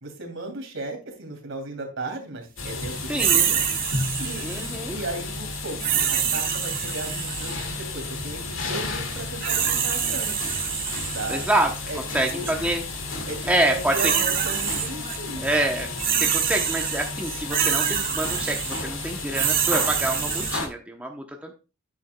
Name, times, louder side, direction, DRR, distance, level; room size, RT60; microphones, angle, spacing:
voice 1, 0.0-3.6 4.2-10.4 11.1-11.5 11.9-12.0 12.3-12.5 13.3-15.5, right 2 dB, 60° right, 3 dB, 2.8 m, -35 dB
sound 1, 2.6-20.7, left 3 dB, 65° left, 2.1 m, -33 dB
voice 2, 3.1-3.5 4.4-4.9 11.3-11.7 12.1-12.8 13.5-14.1 15.4-15.9 16.2-21.5, right 1 dB, 5° right, 2 dB, 0.8 m, -26 dB
sound 2, 3.2-4.8 5.8-7.7 9.1-11.6 12.3-12.5 13.6-15.2 15.5-20.6, right 8 dB, 45° right, 1.4 m, -26 dB
sound 3, 14.9-18.2, left 3 dB, 15° left, 4.9 m, -49 dB
9.6 x 9.3 x 2.2 m, 0.31 s
head